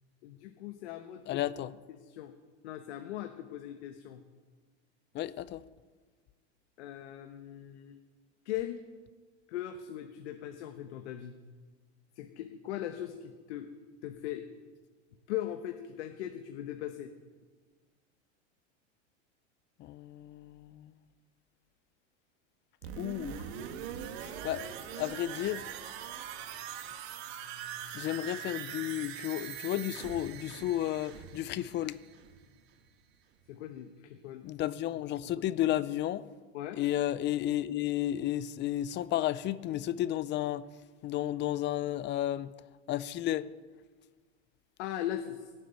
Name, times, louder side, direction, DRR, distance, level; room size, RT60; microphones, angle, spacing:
voice 1, 0.2-1.4 1.9-2.3 2.6-4.2 6.8-8.0 8.4-8.8 9.5-11.3 12.2-13.7 14.0-14.5 15.3-17.1 33.5-34.4 36.5-36.8 44.8-45.5, left 12 dB, 70° left, 1.2 m, -39 dB
voice 2, 1.3-1.7 5.1-5.6 19.8-20.9 23.0-23.4 24.2-24.7 25.0-25.7 27.9-32.0 34.4-36.2 36.7-40.7 41.0-42.5 42.9-43.5, left 13 dB, 30° left, 0.5 m, -32 dB
sound 1, 22.8-32.5 32.9-33.0, right 9 dB, 60° right, 1.7 m, -42 dB
17.0 x 7.3 x 8.9 m
supercardioid pair, 120°, 35 cm